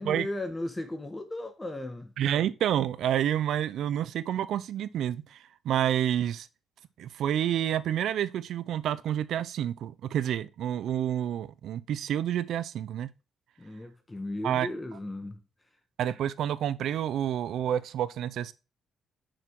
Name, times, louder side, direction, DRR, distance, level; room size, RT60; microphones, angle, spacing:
voice 1, 0.0-2.1 13.6-15.4, left 1 dB, 15° left, 1.3 m, -36 dB
voice 2, 2.2-5.4 5.6-6.5 7.0-13.1 14.4-14.7 16.0-18.5, right 10 dB, 75° right, 0.6 m, -29 dB
6.5 x 5.9 x 4.6 m
cardioid pair, 90°, 0 cm